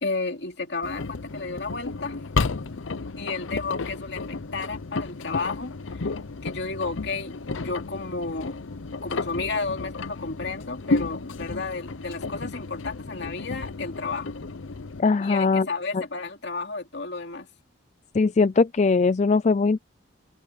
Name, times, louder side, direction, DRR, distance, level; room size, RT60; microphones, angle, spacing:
voice 1, 0.0-2.2 3.2-6.1 6.4-8.6 9.0-14.4 15.2-17.5, left 3 dB, 60° left, 2.9 m, -32 dB
Engine, 0.8-15.0, left 3 dB, 85° left, 0.8 m, -32 dB
voice 2, 15.0-15.7 15.9-16.0 18.1-19.8, left 4 dB, 35° left, 0.4 m, -20 dB
head